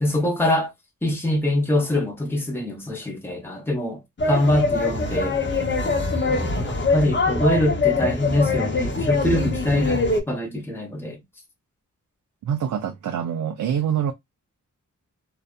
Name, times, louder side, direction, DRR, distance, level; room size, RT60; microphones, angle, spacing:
voice 1, 0.0-0.7 1.0-4.0 4.2-5.4 6.3-11.2, left 1 dB, 5° left, 0.9 m, -24 dB
sound 1, 4.2-10.2, left 3 dB, 35° left, 1.0 m, -23 dB
voice 2, 12.4-14.1, right 9 dB, 70° right, 0.5 m, -25 dB
2.7 x 2.4 x 2.2 m
cardioid pair, 70°, 31 cm